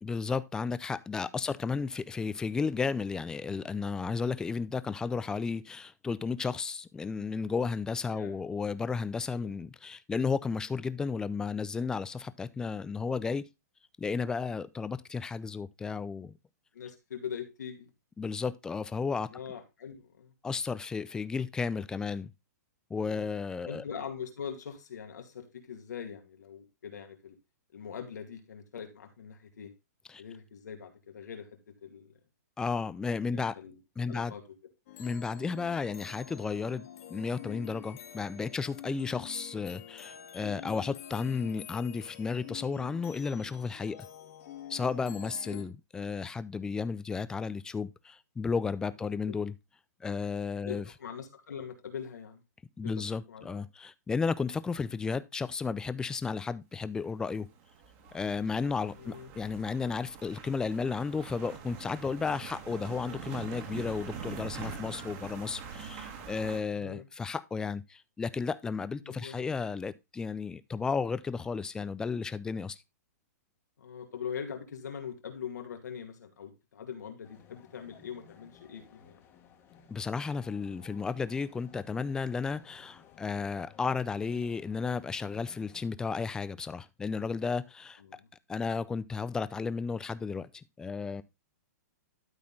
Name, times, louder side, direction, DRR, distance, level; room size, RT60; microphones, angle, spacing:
voice 1, 0.0-13.5 14.0-16.4 18.2-19.3 20.4-22.3 22.9-23.8 30.1-30.2 32.6-33.6 34.0-34.3 35.0-44.0 44.7-49.6 50.0-50.8 52.8-57.5 58.1-72.8 79.9-88.0 88.5-91.2, left 5 dB, 5° left, 0.3 m, -33 dB
voice 2, 16.7-17.9 19.3-20.3 23.0-23.3 23.6-27.4 27.7-29.7 30.2-32.1 33.2-34.4 44.2-44.3 45.5-45.7 50.7-52.4 52.8-53.6 59.0-59.3 66.7-67.1 69.0-69.4 73.8-79.2 88.0-88.3, left 7 dB, 85° left, 2.3 m, -42 dB
sound 1, 34.9-45.6, left 10 dB, 55° left, 1.7 m, -47 dB
sound 2, 57.3-66.6, right 6 dB, 35° right, 1.9 m, -44 dB
sound 3, 77.2-85.9, left 8 dB, 25° left, 1.4 m, -57 dB
12.0 x 4.3 x 3.6 m
hypercardioid pair, 150°, 9 cm